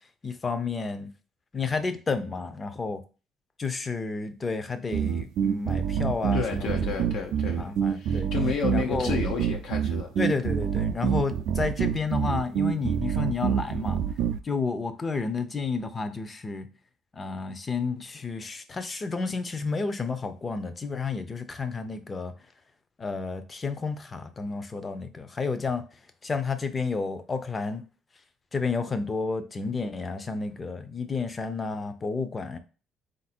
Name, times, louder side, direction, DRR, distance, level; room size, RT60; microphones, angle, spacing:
voice 1, 0.2-1.1 1.5-3.0 3.6-7.0 7.4-8.3 8.7-9.2 10.2-14.0 14.4-16.7 17.1-22.3 23.0-25.8 26.2-27.8 28.5-32.6, left 4 dB, 25° left, 0.5 m, -31 dB
sound 1, 4.9-14.4, right 8 dB, 80° right, 0.3 m, -27 dB
voice 2, 6.3-10.1, left 6 dB, 80° left, 0.7 m, -31 dB
4.0 x 2.6 x 4.2 m
cardioid pair, 120°, 0 cm